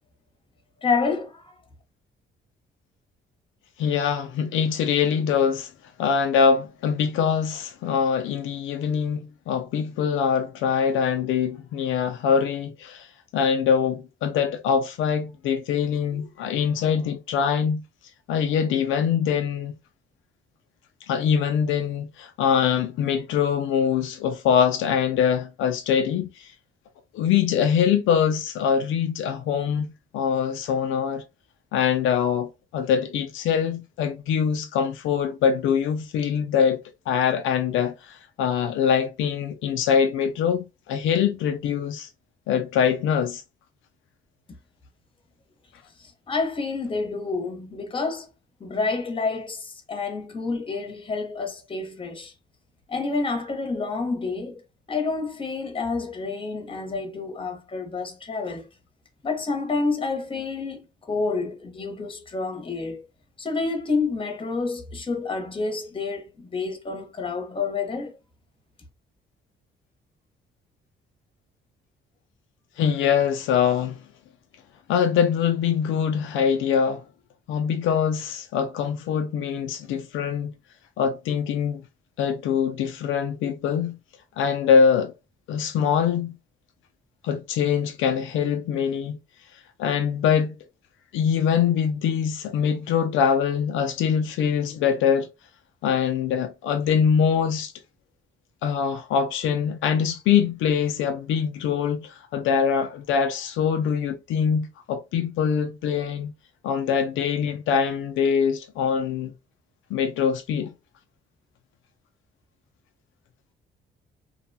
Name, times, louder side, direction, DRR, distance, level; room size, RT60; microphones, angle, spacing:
voice 1, 0.8-1.5 46.0-48.3 48.6-52.3 52.9-54.6 54.9-58.7 59.2-63.0 63.4-68.2, left 4 dB, 25° left, 0.9 m, -28 dB
voice 2, 3.8-5.7 6.0-13.1 13.3-17.8 18.3-19.7 21.1-26.5 27.1-29.9 30.1-31.2 31.7-36.8 37.1-42.1 42.5-43.4 72.8-74.0 74.9-77.0 77.5-80.5 81.0-81.8 82.2-84.0 84.4-85.1 85.5-86.3 87.2-89.2 89.8-90.5 91.1-95.3 95.8-97.7 98.6-106.3 106.6-109.3 109.9-110.7, left 7 dB, 85° left, 0.4 m, -23 dB
2.7 x 2.2 x 2.6 m
cardioid pair, 90°, 20 cm